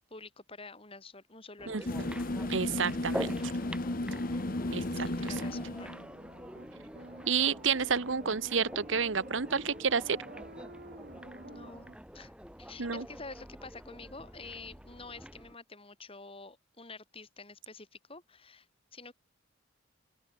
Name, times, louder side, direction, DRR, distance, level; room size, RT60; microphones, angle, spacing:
voice 1, 0.1-2.1 4.6-6.0 11.4-11.9 12.1-12.3 12.6-19.1, left 3 dB, 30° left, 5.4 m, -48 dB
sound 1, 1.6-15.6, equal, 5° right, 4.3 m, -46 dB
voice 2, 1.7-2.1 2.5-3.4 4.7-5.3 7.3-10.2 12.8-13.0, right 6 dB, 75° right, 1.1 m, -30 dB
sound 2, 1.9-6.1, left 2 dB, 45° left, 1.1 m, -34 dB
sound 3, 4.9-12.0, right 1 dB, 50° right, 4.1 m, -50 dB
open air
head